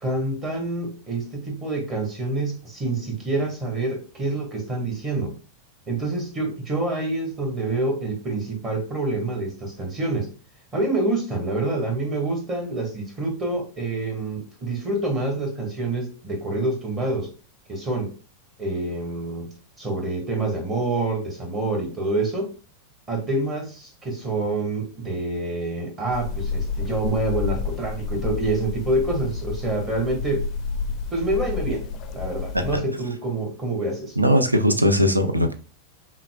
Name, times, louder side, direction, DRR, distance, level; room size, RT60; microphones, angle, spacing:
voice 1, 0.0-5.4 5.9-10.3 10.7-17.3 17.7-18.1 18.6-19.5 19.8-22.6 23.1-30.5 31.1-31.9 32.1-34.2, right 2 dB, 20° right, 1.4 m, -27 dB
sound 1, 26.1-32.8, left 5 dB, 35° left, 0.5 m, -30 dB
voice 2, 34.2-35.5, equal, 85° right, 0.5 m, -19 dB
5.6 x 2.1 x 2.3 m
figure-of-eight pair, 90°, 0 cm